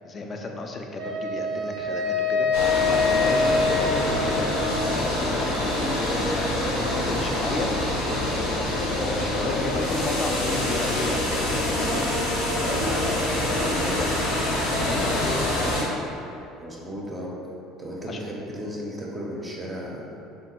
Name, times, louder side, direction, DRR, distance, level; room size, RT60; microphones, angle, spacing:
voice 1, 0.0-4.5 4.9-7.7 8.2-12.1 12.5-15.9 18.1-18.2, left 2 dB, 35° left, 2 dB, 0.3 m, -34 dB
Wind instrument woodwind instrument, 1.0-5.1, left 4 dB, 75° right, 0.5 m, -25 dB
sound 1, 2.5-15.8, left 1 dB, 90° left, 0.6 m, -25 dB
voice 2, 16.6-17.3 17.8-20.2, equal, 20° right, -3 dB, 0.5 m, -35 dB
3.1 x 2.2 x 2.9 m, 2.8 s
supercardioid pair, 95°, 0 cm